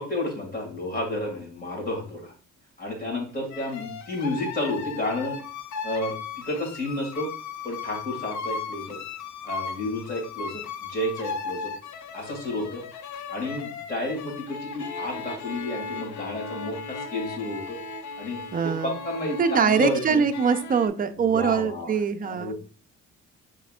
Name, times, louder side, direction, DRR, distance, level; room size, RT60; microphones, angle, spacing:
voice 1, 0.0-2.3 2.8-5.4 5.8-7.3 7.6-9.0 9.4-10.6 10.9-11.7 12.1-12.8 13.3-17.8 18.2-18.4 18.8-20.2 21.2-21.9 22.2-22.5, left 1 dB, 30° left, -1 dB, 2.4 m, -31 dB
sound 1, 3.5-20.9, left 5 dB, 65° left, 0.6 m, -37 dB
voice 2, 18.5-19.0 19.4-22.5, right 6 dB, 30° right, 8 dB, 0.5 m, -23 dB
5.7 x 3.7 x 2.4 m, 0.40 s
cardioid pair, 90°, 30 cm